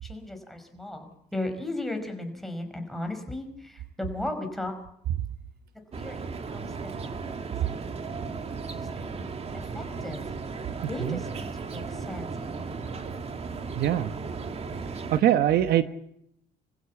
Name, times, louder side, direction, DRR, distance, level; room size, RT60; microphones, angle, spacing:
voice 1, 0.0-1.0 1.3-4.7 5.9-8.4 8.8-10.2 10.9-13.0, left 2 dB, ahead, 4 dB, 5.1 m, -37 dB
sound 1, 5.9-15.2, right 4 dB, 35° right, 2.0 m, -36 dB
voice 2, 13.8-14.1 15.1-15.8, right 11 dB, 65° right, 10 dB, 1.2 m, -22 dB
26.0 x 15.5 x 8.4 m, 0.77 s
cardioid pair, 110°, 17 cm